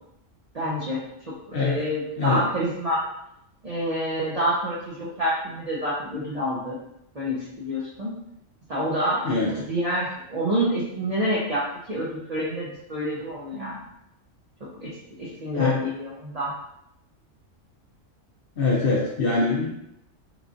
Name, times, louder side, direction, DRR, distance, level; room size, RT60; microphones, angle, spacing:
voice 1, 0.5-1.0 1.5-3.0 3.6-6.8 7.1-8.1 8.7-13.8 14.8-14.9 15.2-16.5, equal, 60° right, -6 dB, 0.4 m, -27 dB
voice 2, 18.6-19.7, left 3 dB, 65° left, -3 dB, 0.6 m, -23 dB
3.0 x 2.4 x 2.4 m, 0.80 s
omnidirectional pair, 1.3 m